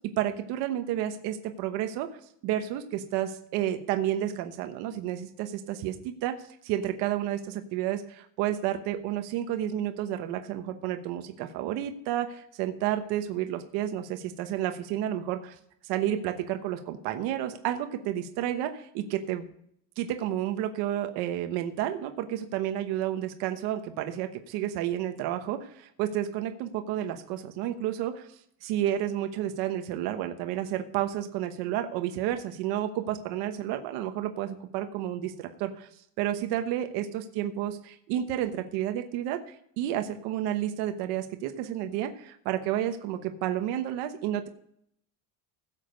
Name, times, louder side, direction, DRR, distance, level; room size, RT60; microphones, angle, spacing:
voice 1, 0.2-6.4 6.6-15.5 15.8-19.4 20.0-35.9 36.2-44.5, right 11 dB, 60° right, 7 dB, 1.1 m, -31 dB
16.0 x 7.4 x 5.2 m, 0.70 s
cardioid pair, 180°, 44 cm